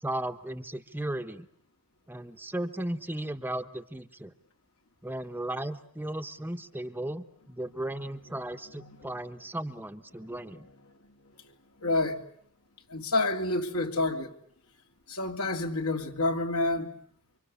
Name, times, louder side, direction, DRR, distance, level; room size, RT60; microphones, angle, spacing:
voice 1, 0.0-1.5 2.1-4.3 5.0-10.7, right 1 dB, 10° right, 1.1 m, -36 dB
voice 2, 11.8-12.2 12.9-14.3 15.1-16.9, left 2 dB, 70° left, 3.1 m, -28 dB
29.0 x 25.0 x 7.0 m
head